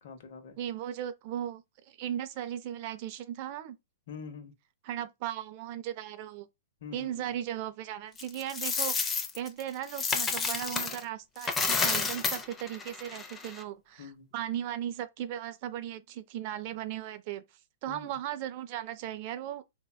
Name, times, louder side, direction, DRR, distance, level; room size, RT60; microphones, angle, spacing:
voice 1, 0.0-0.6 4.1-4.5 6.8-7.3 14.0-14.3 17.9-18.2, left 6 dB, 60° left, 0.7 m, -45 dB
voice 2, 0.6-3.8 4.8-6.5 6.9-9.0 9.3-17.4 17.8-19.6, right 11 dB, 45° right, 0.3 m, -37 dB
Coin (dropping), 8.2-11.0 11.4-13.6, left 4 dB, 15° left, 0.4 m, -31 dB
3.4 x 2.1 x 2.2 m
hypercardioid pair, 130°, 0 cm